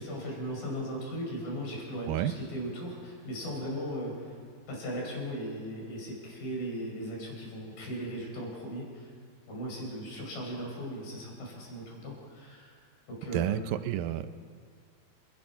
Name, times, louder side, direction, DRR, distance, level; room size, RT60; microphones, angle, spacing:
voice 1, 0.0-4.3 4.7-9.1 9.5-12.8 13.1-13.6 14.1-14.2, equal, 60° left, -1 dB, 6.7 m, -37 dB
voice 2, 13.3-14.4, right 12 dB, 75° right, 11 dB, 2.2 m, -30 dB
29.5 x 18.5 x 5.7 m, 2.2 s
omnidirectional pair, 4.6 m